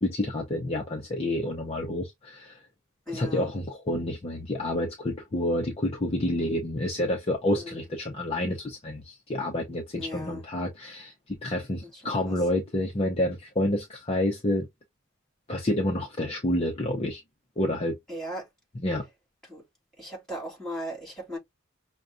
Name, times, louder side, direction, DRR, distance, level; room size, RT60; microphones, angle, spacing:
voice 1, 0.0-2.6 3.1-14.7 15.5-17.2 17.6-18.0 18.7-19.0, left 1 dB, 30° left, 0.6 m, -29 dB
voice 2, 3.1-3.5 7.5-7.9 10.0-10.5 11.8-12.0 12.3-12.4 18.1-18.5 19.5-19.6 20.0-21.4, equal, 5° left, 2.6 m, -37 dB
5.9 x 2.2 x 2.5 m
head